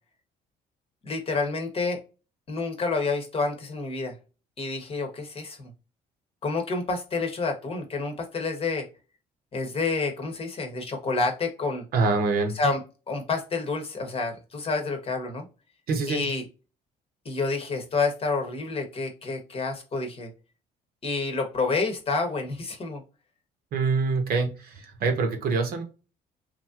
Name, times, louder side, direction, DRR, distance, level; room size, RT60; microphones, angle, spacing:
voice 1, 1.0-2.0 2.5-4.1 4.6-5.7 6.4-8.9 9.5-11.8 12.5-15.5 16.1-16.4 17.2-20.3 21.0-23.0, left 3 dB, 35° left, 4 dB, 0.9 m, -29 dB
voice 2, 11.9-12.6 15.9-16.3 23.7-25.8, right 4 dB, 65° right, 5 dB, 0.9 m, -25 dB
3.1 x 2.6 x 2.3 m, 0.31 s
cardioid pair, 110°, 17 cm